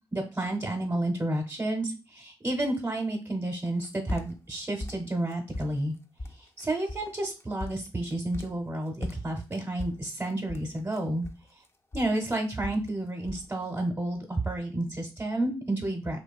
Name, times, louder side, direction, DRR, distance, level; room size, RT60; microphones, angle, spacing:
voice 1, 0.1-5.9 6.6-11.2 11.9-16.2, right 1 dB, 25° right, 2 dB, 0.7 m, -31 dB
sound 1, 3.7-4.6 4.8-5.9 6.2-6.6 6.9-7.1 7.4-8.7 9.0-11.7 11.9-12.9 13.2-13.5, left 1 dB, 30° left, 0.3 m, -38 dB
2.8 x 2.2 x 2.3 m, 0.30 s
cardioid pair, 50°, 9 cm